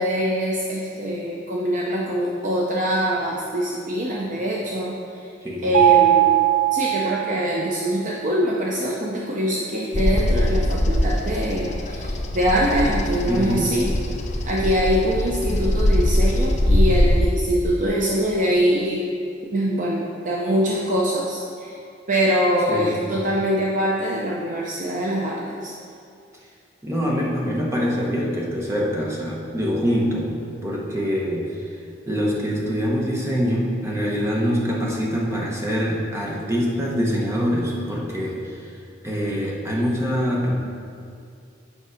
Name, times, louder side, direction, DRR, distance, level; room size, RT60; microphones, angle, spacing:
voice 1, 0.0-5.3 5.6-6.4 6.7-13.9 14.4-19.1 19.4-21.8 22.1-25.7, equal, 40° right, -3 dB, 0.7 m, -23 dB
voice 2, 5.4-5.8 13.3-13.7 22.7-23.2 26.8-30.3 30.6-31.6 32.1-38.7 39.0-40.5, equal, 15° right, -4 dB, 1.2 m, -24 dB
Mallet percussion, 5.7-7.7, right 13 dB, 85° right, 0.9 m, -18 dB
Bird vocalization bird call bird song, 9.9-17.2, left 1 dB, 35° left, 0.7 m, -22 dB
8.3 x 5.4 x 5.0 m, 2.4 s
head